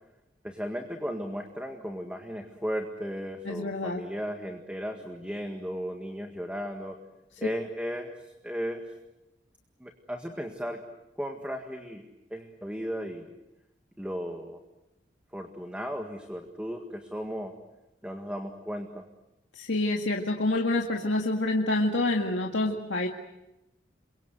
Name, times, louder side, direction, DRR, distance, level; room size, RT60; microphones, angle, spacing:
voice 1, 0.4-7.0 7.4-8.1 8.4-8.8 9.8-10.8 11.2-13.3 14.0-14.6 15.3-17.6 18.0-19.0, equal, 5° right, 4 dB, 1.8 m, -35 dB
voice 2, 3.4-4.0 19.6-23.1, left 2 dB, 85° left, 1 dB, 2.0 m, -27 dB
28.5 x 23.5 x 7.9 m, 0.91 s
head